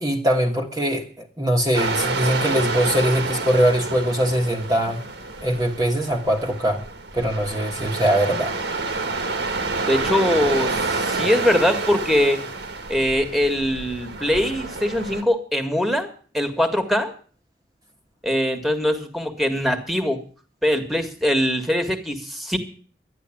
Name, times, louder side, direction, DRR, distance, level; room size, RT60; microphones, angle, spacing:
voice 1, 0.0-5.0 5.4-6.8 7.1-8.5, equal, 20° right, 0 dB, 1.5 m, -22 dB
sound 1, 1.7-15.2, right 3 dB, 65° right, 1.8 m, -28 dB
voice 2, 9.9-12.4 12.9-16.1 16.3-17.1 18.2-20.2 20.6-22.6, left 1 dB, ahead, 6 dB, 1.9 m, -22 dB
12.5 x 10.5 x 8.6 m, 0.42 s
head